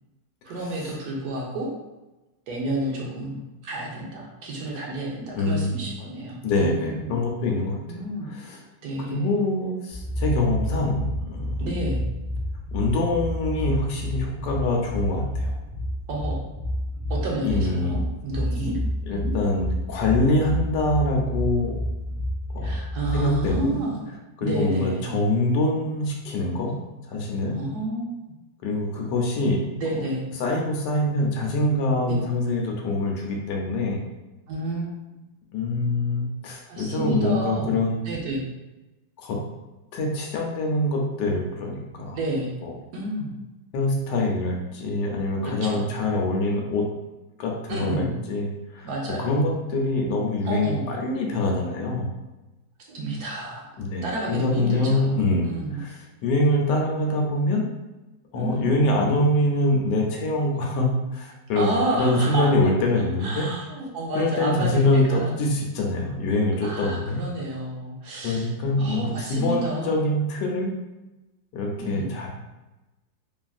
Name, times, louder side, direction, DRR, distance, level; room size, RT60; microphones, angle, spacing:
voice 1, 0.4-1.7 2.5-7.2 7.9-8.3 8.8-9.4 11.6-12.0 16.1-16.4 17.1-18.8 19.1-19.3 22.6-24.0 24.4-25.1 27.5-28.1 29.8-30.2 32.1-32.2 34.5-34.9 36.6-37.7 38.0-38.4 42.1-42.5 42.9-43.3 45.4-45.9 47.7-48.2 48.8-49.3 50.4-50.9 52.9-53.7 54.0-55.9 58.3-58.8 61.5-62.5 63.0-65.4 66.6-68.5 68.8-70.0 71.8-72.1, right 1 dB, 70° right, -2 dB, 1.1 m, -30 dB
voice 2, 5.3-5.8 6.4-8.0 8.3-8.6 9.1-11.6 12.7-15.5 17.4-18.0 19.1-21.7 22.5-22.8 23.1-23.7 24.4-26.8 27.1-27.6 28.6-29.7 29.9-30.0 30.4-34.0 35.5-38.0 39.2-39.4 39.9-42.2 42.6-42.7 43.7-46.9 47.4-48.9 49.2-52.1 53.8-56.0 56.2-57.7 58.3-63.5 64.1-67.2 68.2-70.7 71.5-72.3, left 2 dB, 75° left, 0 dB, 1.2 m, -24 dB
sound 1, 9.9-23.6, left 1 dB, 35° right, 0.5 m, -29 dB
3.1 x 2.4 x 2.3 m, 1.1 s
omnidirectional pair, 1.9 m